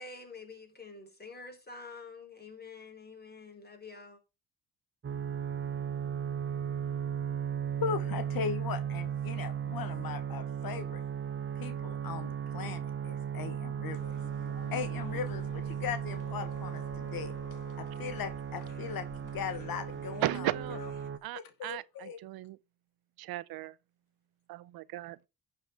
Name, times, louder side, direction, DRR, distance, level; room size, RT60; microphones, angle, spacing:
voice 1, 0.0-4.2, left 3 dB, 25° left, 4.4 m, -47 dB
sound 1, 5.0-21.2, right 8 dB, 35° right, 0.8 m, -36 dB
voice 2, 7.8-11.0 11.6-14.1 14.7-17.4 17.8-20.9 21.3-22.2, left 7 dB, 75° left, 1.3 m, -39 dB
sound 2, 13.9-21.1, left 7 dB, 60° left, 1.4 m, -53 dB
voice 3, 20.2-20.8 21.2-22.6 23.2-23.8 24.5-25.3, right 16 dB, 85° right, 0.6 m, -36 dB
11.5 x 7.6 x 3.5 m
cardioid pair, 75°, 36 cm